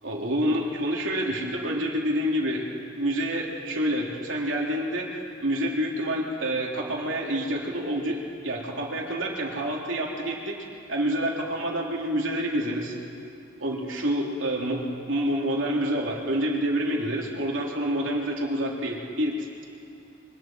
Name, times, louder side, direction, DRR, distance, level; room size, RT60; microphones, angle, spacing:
voice 1, 0.0-2.7 2.9-10.6 10.9-12.9 13.6-19.7, equal, 90° right, -2 dB, 3.3 m, -28 dB
26.5 x 24.0 x 4.6 m, 2.6 s
head